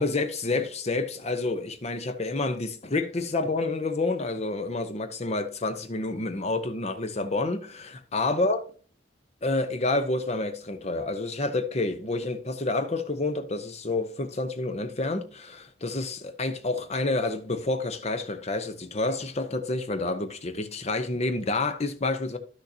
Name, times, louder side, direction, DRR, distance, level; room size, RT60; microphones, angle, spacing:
voice 1, 0.0-8.6 9.4-22.4, left 2 dB, 35° left, 0.8 m, -29 dB
11.5 x 6.6 x 2.8 m
head